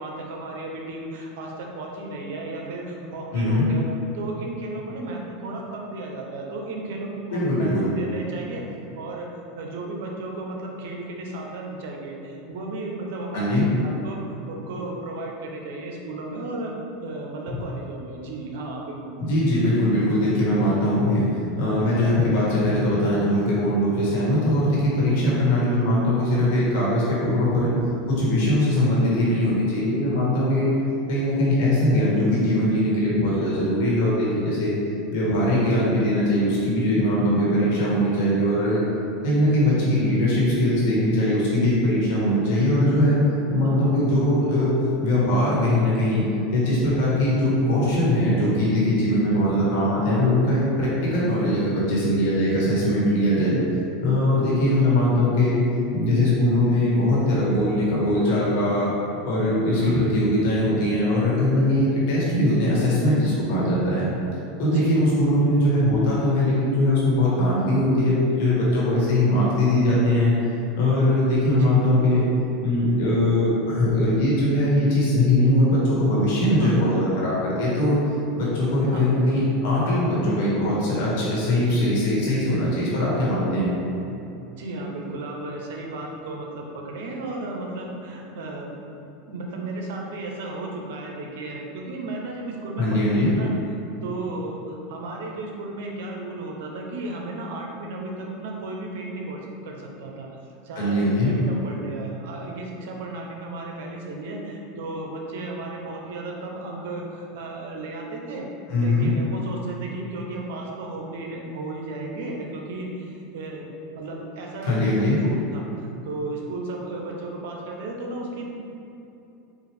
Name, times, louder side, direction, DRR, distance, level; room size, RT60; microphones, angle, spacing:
voice 1, 0.0-3.8 4.1-8.7 9.0-9.3 9.6-16.7 17.0-19.1 43.6-43.8 53.4-53.5 59.8-60.0 64.6-64.9 69.4-69.6 71.6-71.8 76.6-76.9 78.9-79.2 84.6-88.8 89.3-93.5 94.0-100.3 100.6-108.5 108.8-113.7 113.9-115.7 116.0-118.5, right 2 dB, 75° right, 0 dB, 0.7 m, -34 dB
voice 2, 3.3-3.6 7.3-7.9 13.3-13.6 19.3-21.2 21.6-27.7 28.1-30.7 31.1-34.7 35.1-38.8 39.2-43.2 43.5-44.7 45.0-46.2 46.5-53.6 54.0-55.6 55.9-58.9 59.2-64.1 64.6-70.3 70.7-72.3 72.6-78.0 78.3-83.7 92.8-93.3 100.7-101.3 108.7-109.1 114.7-115.2, left 1 dB, 70° left, -6 dB, 1.5 m, -21 dB
4.7 x 2.5 x 3.3 m, 2.8 s
supercardioid pair, 115°, 0 cm